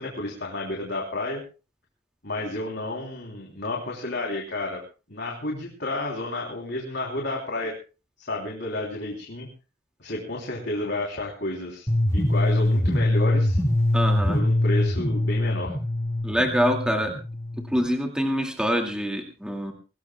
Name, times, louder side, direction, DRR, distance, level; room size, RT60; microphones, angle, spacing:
voice 1, 0.0-1.4 2.2-4.8 5.1-7.7 8.2-9.5 10.0-13.6 14.3-15.8, left 2 dB, 60° left, -1 dB, 3.4 m, -31 dB
sound 1, 11.9-17.9, left 1 dB, 15° left, 1.9 m, -23 dB
voice 2, 13.9-14.4 16.2-17.1 17.7-19.7, equal, 5° right, 2 dB, 2.2 m, -25 dB
24.0 x 18.5 x 2.3 m, 0.33 s
head